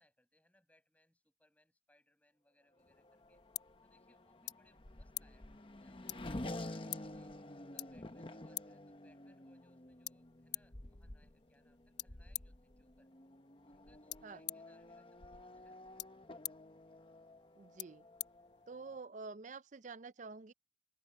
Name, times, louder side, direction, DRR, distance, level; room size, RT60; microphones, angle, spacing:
voice 1, 0.0-3.4 3.8-7.3 7.7-13.1 13.7-15.8, left 1 dB, 10° left, 7.6 m, -73 dB
sound 1, 2.8-19.1, left 15 dB, 75° left, 1.1 m, -50 dB
Race car auto racing / Accelerating revving vroom, 2.8-19.0, left 1 dB, 30° left, 0.9 m, -50 dB
voice 2, 17.6-18.1 18.7-20.5, right 4 dB, 45° right, 0.5 m, -48 dB
head